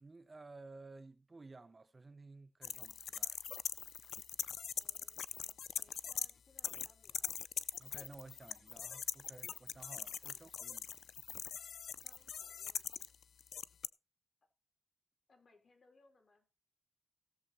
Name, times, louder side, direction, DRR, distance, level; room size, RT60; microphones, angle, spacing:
voice 1, 0.0-3.4 7.8-10.9, right 3 dB, 30° right, 0.7 m, -55 dB
sound 1, 2.6-6.3 6.6-13.9, left 8 dB, 75° left, 0.5 m, -42 dB
voice 2, 4.7-7.3 10.3-10.5 11.9-13.2 15.3-16.5, left 3 dB, 45° left, 4.3 m, -69 dB
16.5 x 7.2 x 4.1 m
cardioid pair, 95°, 0 cm